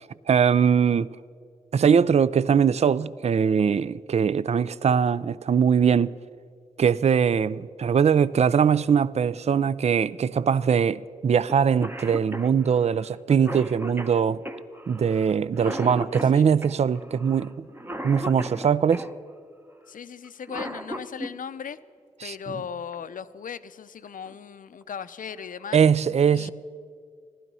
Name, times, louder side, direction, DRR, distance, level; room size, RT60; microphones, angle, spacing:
voice 1, 0.3-1.1 1.7-6.1 6.8-14.4 14.9-17.7 18.0-19.1 22.2-22.3 25.7-26.5, right 7 dB, 50° right, 0.4 m, -21 dB
Cough, 11.5-11.6 11.8-19.1 20.2-21.3 22.9-23.0 24.1-24.3 24.8-24.9 25.3-25.8, equal, 15° right, 1.0 m, -36 dB
voice 2, 15.6-16.0 16.3-16.5 19.9-21.8 22.2-25.8 26.3-26.5, left 7 dB, 70° left, 0.5 m, -37 dB
15.0 x 12.5 x 5.5 m
cardioid pair, 50°, 15 cm